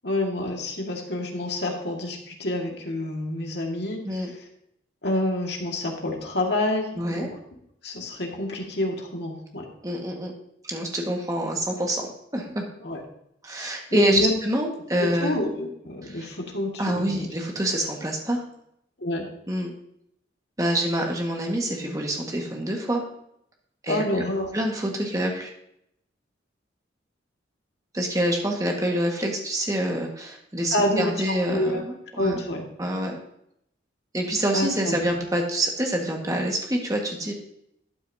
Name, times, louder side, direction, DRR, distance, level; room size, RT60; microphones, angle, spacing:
voice 1, 0.0-4.4 5.0-7.3 7.8-9.7 12.8-13.0 13.9-14.3 15.2-17.2 19.0-19.3 23.9-24.5 30.7-31.8 32.1-32.7 34.5-35.1, left 1 dB, 65° left, 1 dB, 1.9 m, -28 dB
voice 2, 7.0-7.3 9.8-10.3 10.6-12.0 12.3-12.7 13.4-15.3 16.0-16.3 16.8-18.4 19.5-19.7 20.6-23.0 23.8-24.0 24.5-25.5 27.9-32.4 32.8-33.2 34.1-37.3, right 1 dB, 20° right, 1 dB, 1.6 m, -26 dB
12.5 x 9.0 x 2.7 m, 0.75 s
head